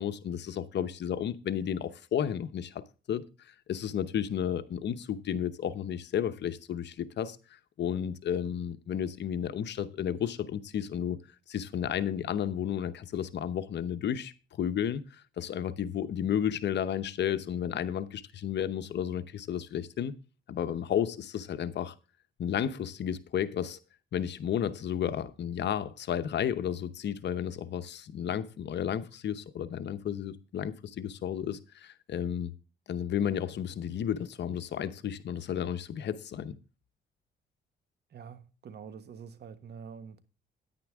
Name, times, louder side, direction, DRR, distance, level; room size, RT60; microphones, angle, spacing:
voice 1, 0.0-2.7 3.1-3.2 3.7-11.2 11.5-14.3 14.6-20.1 20.5-21.9 22.4-23.8 24.1-32.5 32.9-36.5, left 9 dB, 60° left, 0.9 m, -32 dB
voice 2, 38.1-40.3, right 6 dB, 55° right, 1.4 m, -46 dB
9.9 x 9.8 x 3.6 m
cardioid pair, 90°, 20 cm